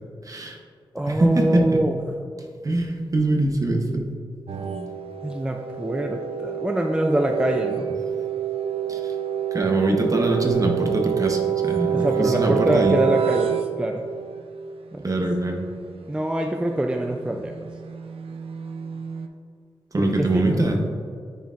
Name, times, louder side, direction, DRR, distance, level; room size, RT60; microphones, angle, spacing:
voice 1, 0.2-0.6 1.1-1.8 2.6-4.1 8.9-9.1 9.5-13.0 15.0-15.7 19.9-20.8, right 2 dB, 35° right, 2 dB, 0.8 m, -23 dB
voice 2, 0.9-2.0 5.2-7.9 11.9-13.5 13.8-14.0 14.9-15.1 16.1-17.6 20.0-20.5, right 1 dB, 10° right, 2 dB, 0.3 m, -24 dB
sound 1, 4.5-14.4 16.6-19.3, right 9 dB, 90° right, 0.4 m, -27 dB
9.1 x 4.4 x 2.4 m, 2.2 s
wide cardioid pair, 90°, 9 cm